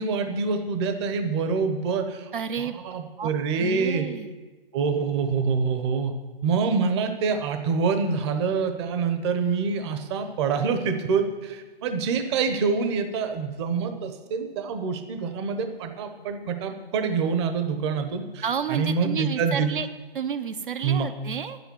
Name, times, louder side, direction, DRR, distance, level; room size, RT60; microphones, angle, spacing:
voice 1, 0.0-2.3 2.6-4.1 4.7-6.1 6.4-18.4 18.7-19.7 20.8-21.1, right 5 dB, 25° right, 7 dB, 1.1 m, -26 dB
voice 2, 2.3-2.8 3.2-3.3 3.6-4.3 18.4-19.9 20.1-21.6, right 7 dB, 55° right, 9 dB, 1.0 m, -30 dB
10.0 x 8.1 x 9.8 m, 1.3 s
hypercardioid pair, 150°, 30 cm